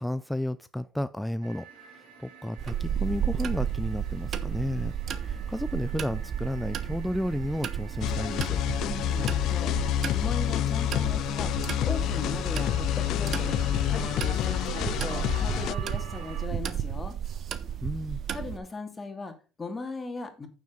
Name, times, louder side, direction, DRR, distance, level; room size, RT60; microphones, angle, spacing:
voice 1, 0.0-8.6 17.8-18.2, left 1 dB, 5° left, 0.5 m, -32 dB
sound 1, 1.4-16.5, right 6 dB, 75° right, 3.8 m, -48 dB
sound 2, 2.6-18.6, right 9 dB, 50° right, 1.2 m, -33 dB
sound 3, 8.0-15.7, left 14 dB, 60° left, 0.3 m, -28 dB
voice 2, 8.8-9.8 10.1-11.5 11.9-13.6 13.9-17.2 18.3-20.5, left 3 dB, 20° left, 2.7 m, -38 dB
9.2 x 7.5 x 4.0 m
supercardioid pair, 80°, 0 cm